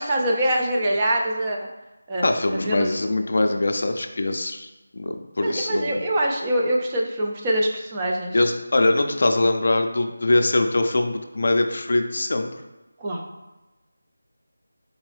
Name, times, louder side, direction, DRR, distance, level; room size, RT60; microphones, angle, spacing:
voice 1, 0.0-1.6 2.1-2.9 5.4-8.4 13.0-13.2, right 1 dB, 20° right, -1 dB, 0.4 m, -24 dB
voice 2, 2.2-4.7 5.0-6.0 8.3-12.5, left 2 dB, 55° left, 5 dB, 0.4 m, -22 dB
3.9 x 2.9 x 3.2 m, 1.1 s
figure-of-eight pair, 170°, 0 cm